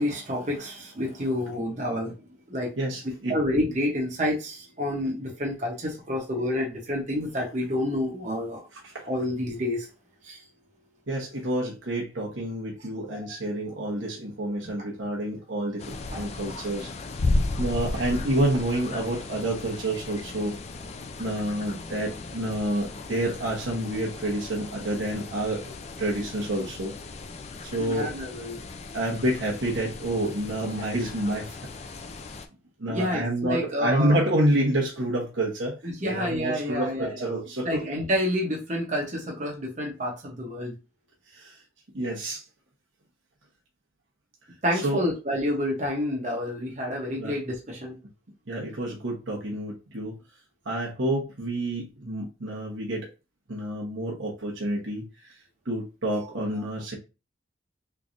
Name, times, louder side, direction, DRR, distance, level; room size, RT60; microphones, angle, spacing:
voice 1, 0.0-2.2 2.5-2.7 3.3-8.6 9.1-9.9 10.2-10.4 13.2-13.3 16.1-16.2 27.8-28.6 32.9-34.3 35.8-37.2 37.6-40.7 44.6-48.0, left 1 dB, 40° right, 0.9 m, -29 dB
voice 2, 2.8-3.4 8.8-9.1 11.1-16.9 17.3-20.5 21.2-26.9 27.6-28.1 28.9-31.6 32.8-37.8 41.3-41.6 41.9-42.4 44.7-45.0 47.2-47.3 48.5-50.2 50.6-53.1 53.5-55.3 55.6-56.9, right 1 dB, 80° right, 1.1 m, -28 dB
sound 1, 15.8-32.5, left 2 dB, 35° left, 0.4 m, -35 dB
3.7 x 3.3 x 2.6 m
head